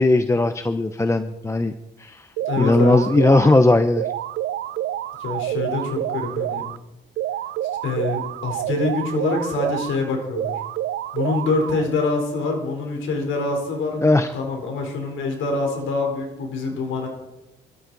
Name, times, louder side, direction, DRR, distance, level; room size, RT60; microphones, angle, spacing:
voice 1, 0.0-1.7 2.0-2.3 2.6-4.1 14.0-14.3, left 2 dB, 15° left, 10 dB, 0.7 m, -18 dB
sound 1, 2.4-3.6 4.0-6.8 7.2-10.0 10.4-11.9, right 13 dB, 70° right, 0.5 m, -28 dB
voice 2, 2.5-3.0 5.2-6.7 7.8-10.6 11.1-17.1, left 3 dB, 80° left, 2 dB, 3.9 m, -25 dB
25.0 x 13.5 x 4.1 m, 1.0 s
cardioid pair, 90°, 20 cm